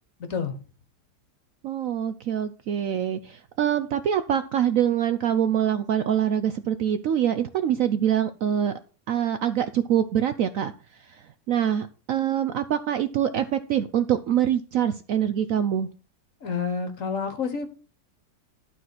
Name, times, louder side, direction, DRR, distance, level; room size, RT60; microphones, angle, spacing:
voice 1, 0.2-0.5 16.4-17.8, left 5 dB, 50° left, 1.5 m, -29 dB
voice 2, 1.6-8.7 9.1-15.9, right 9 dB, 70° right, 0.8 m, -25 dB
12.0 x 4.1 x 5.9 m
omnidirectional pair, 1.8 m